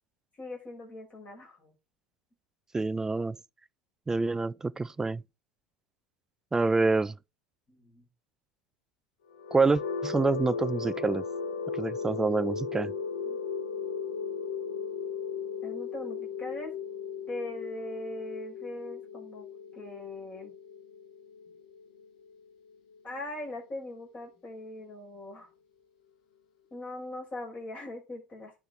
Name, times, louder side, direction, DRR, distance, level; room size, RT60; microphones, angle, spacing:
voice 1, 0.4-1.7 7.7-8.1 13.2-13.4 15.6-16.7 17.3-19.5 19.7-20.5 23.0-25.5 26.7-28.5, left 1 dB, 25° left, 6.0 m, -40 dB
voice 2, 2.7-3.4 4.1-5.2 6.5-7.2 9.5-11.2 11.7-12.9, right 3 dB, 10° right, 0.3 m, -27 dB
sound 1, 9.3-23.2, left 5 dB, 60° left, 1.4 m, -36 dB
10.0 x 5.9 x 4.0 m
figure-of-eight pair, 80°, 5 cm